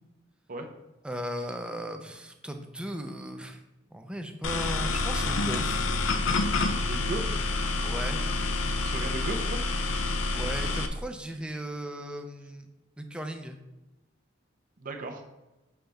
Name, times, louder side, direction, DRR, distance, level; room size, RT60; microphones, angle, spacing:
voice 1, 1.0-3.6 3.9-5.8 7.8-8.2 10.2-12.7 13.0-13.6, right 1 dB, 5° right, 5 dB, 0.5 m, -37 dB
sound 1, 4.4-10.9, left 3 dB, 80° left, 0.6 m, -28 dB
voice 2, 6.8-7.4 8.8-9.6 14.8-15.2, right 2 dB, 45° right, 3 dB, 0.8 m, -35 dB
6.5 x 5.6 x 3.5 m, 1.0 s
head